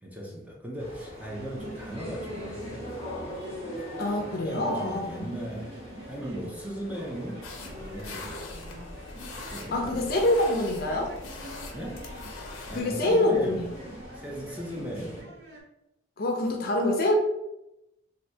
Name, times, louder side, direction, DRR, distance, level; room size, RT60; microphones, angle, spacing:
voice 1, 0.0-3.6 4.1-5.7 6.1-8.6 9.5-10.2 11.7-12.1 12.7-13.7 14.1-15.3, equal, 5° right, -3 dB, 0.5 m, -38 dB
sound 1, 0.8-15.2, left 1 dB, 30° right, 1.2 m, -43 dB
sound 2, 1.3-15.6, right 1 dB, 50° right, 0.6 m, -47 dB
voice 2, 4.0-5.3 9.7-11.1 12.7-13.6 16.2-17.1, left 1 dB, 45° left, 1 dB, 0.5 m, -25 dB
sound 3, 7.4-12.8, left 2 dB, 85° left, 0.6 m, -42 dB
2.7 x 2.6 x 3.3 m, 0.90 s
head